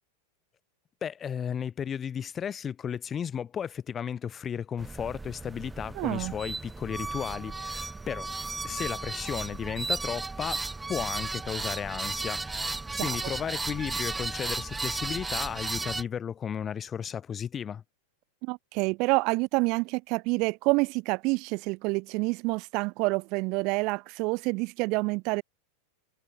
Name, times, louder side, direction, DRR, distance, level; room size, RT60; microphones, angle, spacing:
voice 1, 1.0-8.3 8.6-17.8, left 8 dB, 25° left, 6.1 m, -34 dB
sound 1, 4.8-16.0, right 3 dB, 10° right, 1.0 m, -34 dB
voice 2, 6.0-6.3 12.9-13.2 18.4-25.4, right 27 dB, 40° right, 0.7 m, -28 dB
figure-of-eight pair, 90°, 0 cm